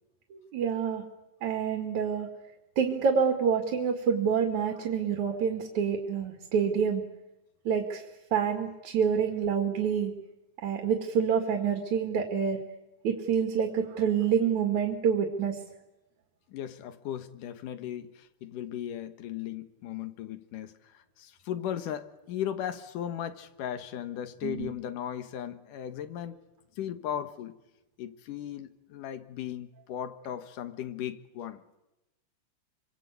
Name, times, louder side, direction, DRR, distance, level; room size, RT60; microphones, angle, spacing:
voice 1, 0.3-1.0 1.4-2.3 2.8-7.0 7.7-8.0 8.3-10.1 10.6-12.6 13.0-15.6 24.4-24.7, right 7 dB, 65° right, 3.6 m, -27 dB
voice 2, 16.5-26.4 26.8-27.6 28.0-31.6, left 10 dB, 80° left, 3.0 m, -37 dB
28.0 x 25.0 x 8.4 m
omnidirectional pair, 3.7 m